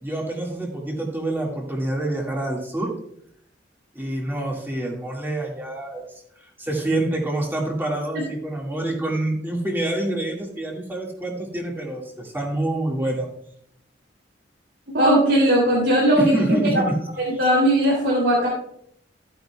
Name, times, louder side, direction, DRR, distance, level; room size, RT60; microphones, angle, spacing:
voice 1, 0.0-2.9 3.9-6.1 6.6-13.3 16.2-16.8 17.3-17.4, right 1 dB, 10° right, -2 dB, 1.9 m, -27 dB
voice 2, 14.9-16.8 17.4-18.5, right 1 dB, 80° right, -5 dB, 3.0 m, -18 dB
13.5 x 9.1 x 2.3 m, 0.70 s
head